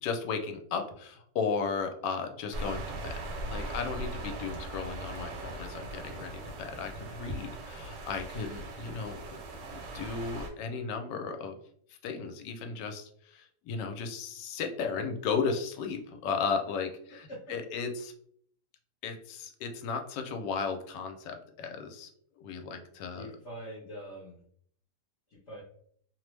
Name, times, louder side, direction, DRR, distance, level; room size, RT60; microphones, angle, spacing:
voice 1, 0.0-3.1 3.5-9.4 9.7-11.6 12.0-18.1 19.0-22.1 22.4-23.3, left 5 dB, 85° left, 5 dB, 1.2 m, -35 dB
sound 1, 2.5-10.5, right 2 dB, 85° right, 1.3 m, -40 dB
voice 2, 23.1-24.4 25.3-25.6, equal, 55° left, -5 dB, 0.8 m, -44 dB
3.0 x 2.0 x 3.1 m, 0.62 s
omnidirectional pair, 1.9 m